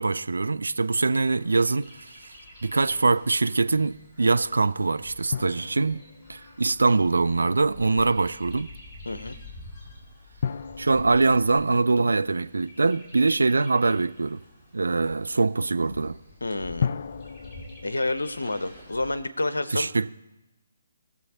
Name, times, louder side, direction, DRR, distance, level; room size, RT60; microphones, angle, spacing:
voice 1, 0.0-2.1 2.6-6.0 6.3-8.7 10.8-14.4 14.7-16.2 19.7-20.1, right 3 dB, 65° right, 0.3 m, -23 dB
Chirp tweet, 1.2-19.2, left 2 dB, 5° left, 3.1 m, -49 dB
sound 1, 5.3-7.6 10.4-13.4 16.8-18.7, left 7 dB, 45° left, 0.3 m, -35 dB
voice 2, 9.1-9.4 16.4-16.9 17.8-19.9, left 2 dB, 70° left, 0.7 m, -29 dB
20.5 x 6.9 x 2.8 m
figure-of-eight pair, 140°, 0 cm